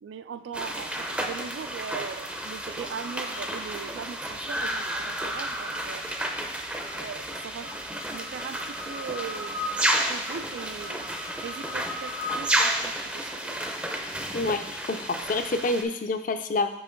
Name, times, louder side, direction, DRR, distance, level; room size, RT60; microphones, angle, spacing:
voice 1, 0.0-6.1 6.9-7.7 8.1-9.8 10.1-13.6, right 6 dB, 90° right, 12 dB, 0.3 m, -40 dB
sound 1, 0.5-15.8, right 1 dB, 5° right, 0.4 m, -31 dB
voice 2, 14.3-16.7, left 3 dB, 45° left, 8 dB, 0.4 m, -28 dB
5.6 x 5.3 x 3.8 m, 0.87 s
head